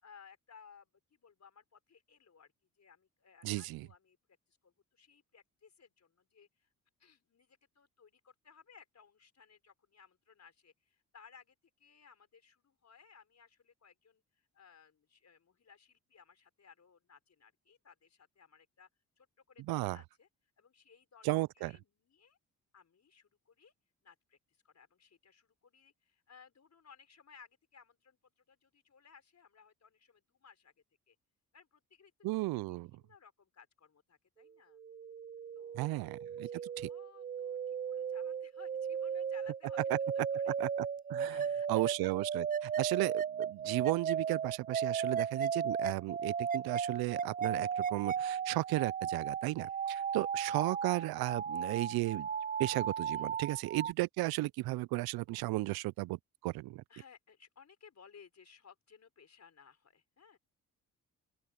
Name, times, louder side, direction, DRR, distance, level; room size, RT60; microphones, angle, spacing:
voice 1, 0.0-2.5 2.8-4.2 4.5-6.7 7.0-18.9 19.2-20.3 20.6-21.3 21.6-22.4 22.7-23.7 24.0-30.7 31.1-31.2 31.5-32.1 32.5-34.8 35.5-36.1 36.4-40.5 41.2-42.1 42.7-42.9 44.9-45.1 49.6-50.1 53.1-53.6 56.9-60.4, left 6 dB, 45° left, 5.3 m, -61 dB
voice 2, 3.4-3.9 19.7-20.0 21.2-21.7 32.2-32.9 35.7-36.5 36.8-36.9 40.5-40.7 41.1-41.4 41.7-52.3 52.6-56.2 56.4-56.8, right 20 dB, 75° right, 0.5 m, -34 dB
sound 1, 34.8-53.9, right 7 dB, 25° right, 0.4 m, -36 dB
open air
supercardioid pair, 65°, 36 cm